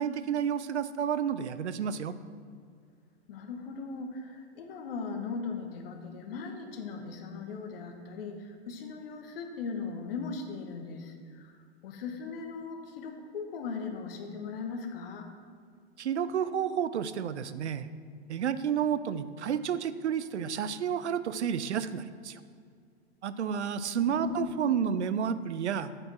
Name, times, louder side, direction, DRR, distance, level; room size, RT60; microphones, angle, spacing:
voice 1, 0.0-2.1 16.0-17.9 18.3-22.4 23.2-25.9, right 8 dB, 85° right, 14 dB, 0.5 m, -30 dB
voice 2, 3.3-11.5 11.8-15.3 23.9-24.6, left 5 dB, 60° left, 5 dB, 1.3 m, -38 dB
8.4 x 5.2 x 6.1 m, 2.1 s
hypercardioid pair, 110°, 33 cm